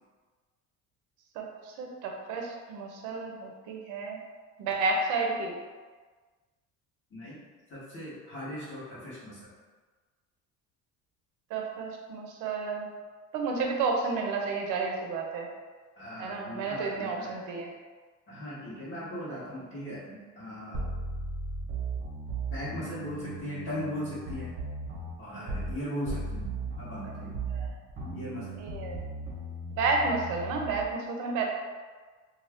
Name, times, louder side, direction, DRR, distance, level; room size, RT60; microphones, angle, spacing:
voice 1, 1.4-4.2 4.6-5.6 11.5-12.9 13.3-15.5 16.2-17.7 19.3-19.4 27.0-27.1 27.5-27.7 28.6-29.0 29.8-31.5, right 4 dB, 80° right, 1 dB, 0.6 m, -31 dB
voice 2, 7.7-9.4 16.0-17.4 18.3-20.8 22.5-24.5 25.2-26.5 26.8-27.5 28.1-28.5, left 1 dB, 40° left, -9 dB, 1.0 m, -38 dB
sound 1, 20.7-25.8 26.1-30.8, right 2 dB, 35° right, 0.9 m, -36 dB
2.5 x 2.3 x 3.4 m, 1.4 s
cardioid pair, 140°, 31 cm